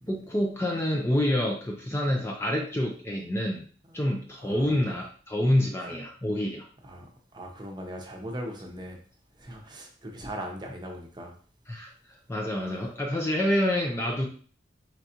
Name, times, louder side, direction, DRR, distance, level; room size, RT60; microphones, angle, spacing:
voice 1, 0.1-3.6 3.9-6.7 11.7-14.3, left 1 dB, 15° left, 1 dB, 0.4 m, -27 dB
voice 2, 4.4-5.0 6.8-9.0 9.3-11.4, equal, 20° right, 2 dB, 0.8 m, -40 dB
4.5 x 3.8 x 2.8 m, 0.43 s
head